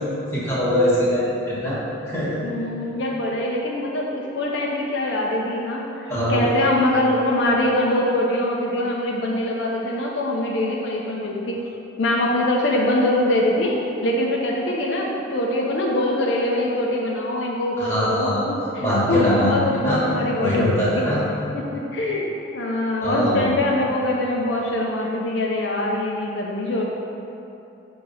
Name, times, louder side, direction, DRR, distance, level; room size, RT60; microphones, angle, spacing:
voice 1, 0.3-1.8 2.1-2.5 6.1-6.4 17.8-18.4 18.8-20.0 20.4-21.2 23.0-23.5, equal, 10° left, -9 dB, 1.3 m, -22 dB
voice 2, 2.4-11.6 12.0-13.7 14.0-21.0 21.5-22.3 22.5-26.9, left 1 dB, 60° left, -2 dB, 0.5 m, -23 dB
6.3 x 2.8 x 5.3 m, 2.8 s
head